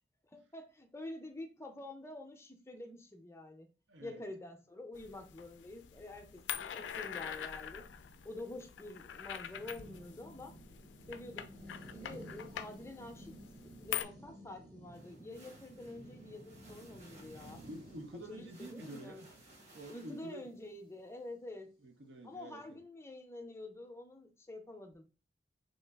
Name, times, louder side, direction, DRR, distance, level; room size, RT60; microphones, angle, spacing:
voice 1, 0.3-3.7 4.0-7.9 8.2-10.5 11.1-11.5 11.8-13.3 13.8-17.6 18.3-19.2 19.9-21.7 22.2-25.0, left 2 dB, 15° left, 0.5 m, -47 dB
voice 2, 3.9-4.2 17.6-19.3 19.7-20.5 21.8-22.8, right 1 dB, 85° right, 0.7 m, -49 dB
sound 1, 5.0-14.1, left 10 dB, 85° left, 0.3 m, -45 dB
sound 2, 6.2-21.6, right 1 dB, 60° right, 1.2 m, -55 dB
sound 3, 14.9-20.6, right 2 dB, 40° right, 0.9 m, -61 dB
3.2 x 2.3 x 3.4 m
head